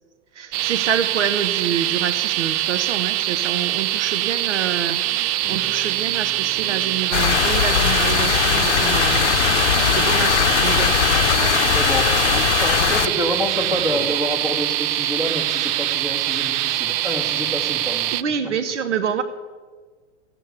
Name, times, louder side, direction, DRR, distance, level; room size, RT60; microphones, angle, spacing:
voice 1, 0.3-9.4 9.9-10.9 11.3-11.5 18.1-19.2, right 7 dB, 75° right, 10 dB, 1.1 m, -27 dB
sound 1, 0.5-18.2, right 15 dB, 35° right, 0.5 m, -23 dB
sound 2, 5.0-14.1, left 1 dB, 5° left, 4.4 m, -39 dB
sound 3, 7.1-13.1, left 10 dB, 75° left, 0.7 m, -20 dB
voice 2, 11.1-18.2, left 1 dB, 10° right, 3 dB, 2.5 m, -28 dB
15.0 x 9.0 x 8.4 m, 1.4 s
hypercardioid pair, 105°, 36 cm